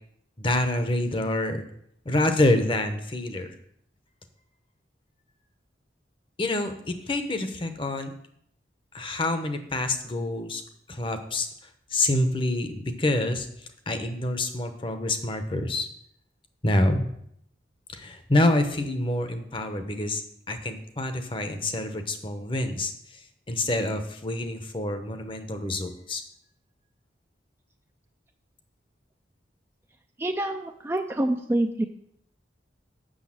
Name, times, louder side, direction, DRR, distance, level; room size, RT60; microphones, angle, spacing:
voice 1, 0.4-1.6 2.0-3.5 6.4-8.1 8.9-10.6 10.9-11.5 11.9-13.5 13.9-15.9 16.6-17.1 17.9-23.2 23.5-26.2, left 1 dB, 30° left, 7 dB, 0.8 m, -27 dB
voice 2, 30.2-31.8, right 1 dB, 15° right, 5 dB, 0.4 m, -26 dB
6.4 x 6.4 x 7.6 m, 0.73 s
head